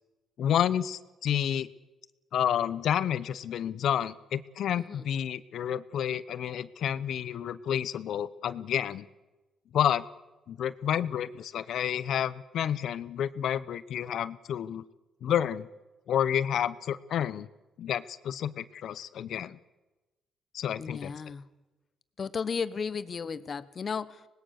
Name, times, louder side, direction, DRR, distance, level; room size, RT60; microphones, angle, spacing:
voice 1, 0.4-1.7 2.3-9.1 9.7-10.0 10.5-14.8 15.2-15.7 16.1-17.5 17.8-19.6 20.5-21.1, left 9 dB, 70° left, 16 dB, 0.9 m, -30 dB
voice 2, 20.8-21.5 22.2-24.3, left 6 dB, 45° left, 14 dB, 1.2 m, -34 dB
25.0 x 20.0 x 6.7 m, 1.1 s
cardioid pair, 90°, 0 cm